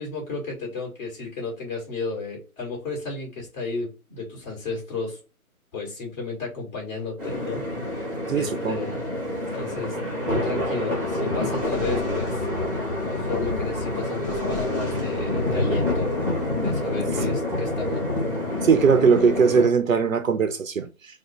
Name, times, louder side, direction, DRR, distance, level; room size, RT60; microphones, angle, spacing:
voice 1, 0.0-5.2 5.7-8.1 8.3-9.0 9.5-10.0 10.3-12.4 13.0-16.3 16.6-18.1, left 3 dB, 30° left, 2.4 m, -33 dB
sound 1, 7.2-19.7, left 1 dB, 5° right, 1.2 m, -27 dB
voice 2, 8.3-8.8 18.6-20.9, right 6 dB, 60° right, 0.7 m, -19 dB
4.0 x 2.5 x 4.3 m
hypercardioid pair, 160°, 44 cm